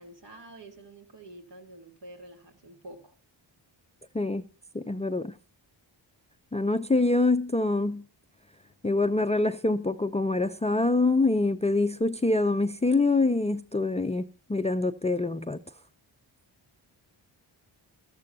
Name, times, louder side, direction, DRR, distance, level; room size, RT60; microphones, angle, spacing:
voice 1, 0.0-3.1, right 1 dB, 60° right, 3.1 m, -48 dB
voice 2, 4.7-5.3 6.5-8.0 8.8-15.6, left 2 dB, 15° left, 0.5 m, -25 dB
14.0 x 13.5 x 2.7 m
cardioid pair, 60°, 48 cm